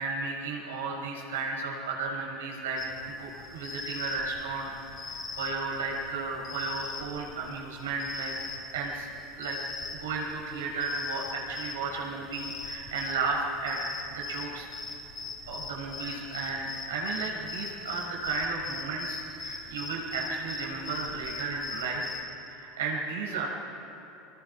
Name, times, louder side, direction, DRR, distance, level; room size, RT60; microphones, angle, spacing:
voice 1, 0.0-4.7 5.0-8.3 8.7-9.1 9.4-9.6 10.0-14.7 15.5-22.0 22.6-23.5, right 3 dB, 85° right, -1 dB, 5.6 m, -34 dB
sound 1, 2.8-22.2, left 4 dB, 45° left, 4.2 m, -41 dB
26.5 x 20.0 x 5.6 m, 2.9 s
hypercardioid pair, 95°, 0 cm